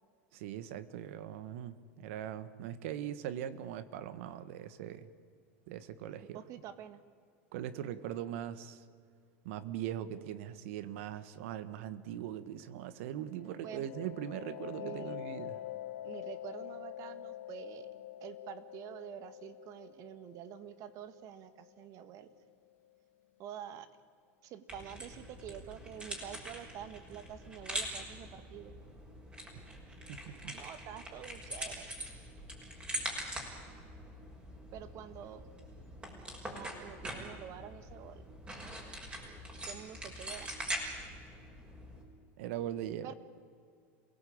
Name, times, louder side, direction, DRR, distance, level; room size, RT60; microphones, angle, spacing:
voice 1, 0.3-5.1 5.7-6.4 7.5-8.8 9.4-15.6 30.1-30.6 42.4-43.1, right 11 dB, 70° right, 14 dB, 1.5 m, -41 dB
voice 2, 6.3-7.0 13.6-13.9 14.8-15.2 16.0-17.9 18.2-22.3 23.4-23.9 24.4-28.7 30.5-31.9 34.7-35.5 36.5-38.3 39.6-40.6 43.0-43.1, right 10 dB, 50° right, 12 dB, 1.8 m, -47 dB
sound 1, 13.2-22.7, left 13 dB, 80° left, 1.6 m, -46 dB
sound 2, 24.7-42.0, right 1 dB, 15° right, 6.0 m, -43 dB
27.5 x 17.5 x 8.8 m, 2.2 s
supercardioid pair, 120°, 7 cm